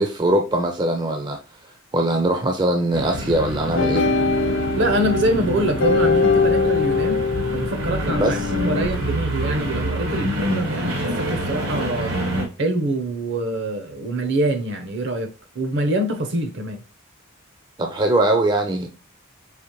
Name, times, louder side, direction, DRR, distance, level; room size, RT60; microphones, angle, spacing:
voice 1, 0.0-1.4 1.9-4.1 8.1-8.3 17.8-18.9, right 1 dB, 20° right, 0.4 m, -21 dB
sound 1, 2.9-12.5, equal, 90° right, 1.5 m, -27 dB
sound 2, 3.8-8.8, left 4 dB, 65° left, 0.6 m, -22 dB
voice 2, 4.8-7.2 7.5-12.1 12.6-16.8, right 1 dB, 55° right, 0.7 m, -25 dB
4.9 x 2.9 x 2.9 m
head